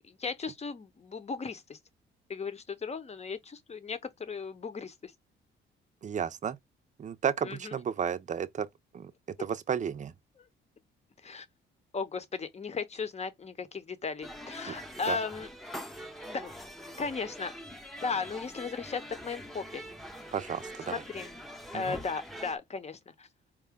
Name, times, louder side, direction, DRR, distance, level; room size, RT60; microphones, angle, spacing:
voice 1, 0.1-1.8 2.3-5.1 7.4-7.7 11.2-11.5 11.9-15.5 16.2-16.5 17.0-17.5 18.0-19.9 20.9-21.3 21.7-23.3, left 5 dB, 35° left, 0.9 m, -36 dB
voice 2, 6.0-6.6 7.0-8.7 8.9-9.1 9.4-10.1 14.7-14.8 15.1-15.2 20.3-21.0 21.7-22.0, right 8 dB, 40° right, 0.6 m, -32 dB
sound 1, 14.2-22.6, equal, ahead, 0.8 m, -44 dB
4.7 x 2.2 x 3.5 m
cardioid pair, 90°, 20 cm